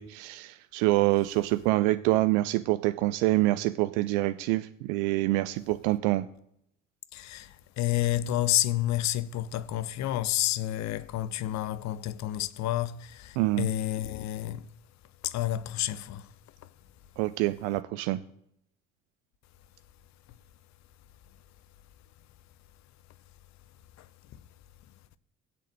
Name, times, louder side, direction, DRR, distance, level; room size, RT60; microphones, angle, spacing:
voice 1, 0.0-6.3 13.4-13.7 17.2-18.2, right 18 dB, 60° right, 0.6 m, -26 dB
voice 2, 7.1-14.7 15.2-16.3 24.0-24.1, left 13 dB, 45° left, 0.7 m, -30 dB
7.6 x 6.6 x 7.6 m
figure-of-eight pair, 50°, 38 cm